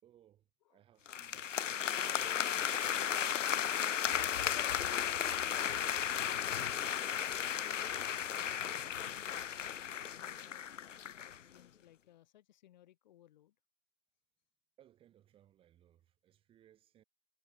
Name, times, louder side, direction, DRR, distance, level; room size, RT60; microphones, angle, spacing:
voice 1, 0.0-3.6 3.9-4.0 14.8-17.0, right 11 dB, 15° right, 4.3 m, -67 dB
sound 1, 1.1-11.4, left 9 dB, 80° left, 0.5 m, -35 dB
voice 2, 5.3-5.9 6.2-7.6 8.1-10.8 11.2-13.5, left 13 dB, 35° left, 3.3 m, -63 dB
figure-of-eight pair, 135°, 37 cm